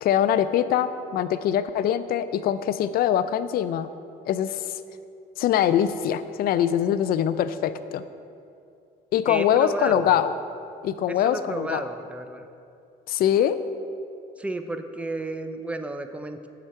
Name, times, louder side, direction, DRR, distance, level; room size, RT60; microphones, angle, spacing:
voice 1, 0.0-3.9 4.3-4.8 5.4-8.0 9.1-10.3 10.8-11.9 13.1-13.6, left 10 dB, 65° left, 13 dB, 0.4 m, -23 dB
voice 2, 9.3-10.1 11.1-12.5 14.4-16.5, right 2 dB, 10° right, 7 dB, 0.5 m, -32 dB
7.2 x 4.9 x 6.8 m, 2.5 s
cardioid pair, 110°, 17 cm